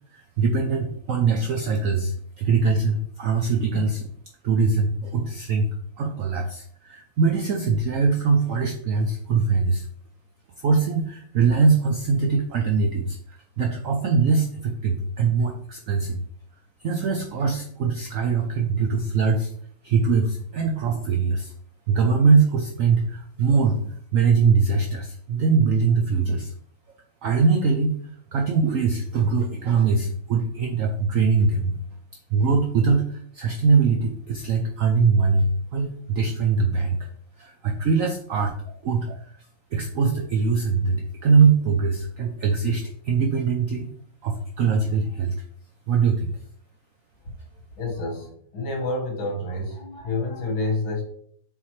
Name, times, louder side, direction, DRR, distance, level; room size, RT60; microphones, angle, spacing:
voice 1, 0.1-4.1 4.4-5.7 6.0-9.9 10.6-16.2 16.8-19.5 19.8-21.5 21.9-26.5 27.2-31.8 32.3-37.0 37.4-38.6 38.8-39.4 39.7-43.9 44.2-45.4 45.9-46.3, right 5 dB, 75° right, 3 dB, 0.7 m, -22 dB
voice 2, 47.8-51.0, left 2 dB, 80° left, 0 dB, 2.4 m, -28 dB
7.0 x 4.6 x 3.1 m, 0.63 s
omnidirectional pair, 2.1 m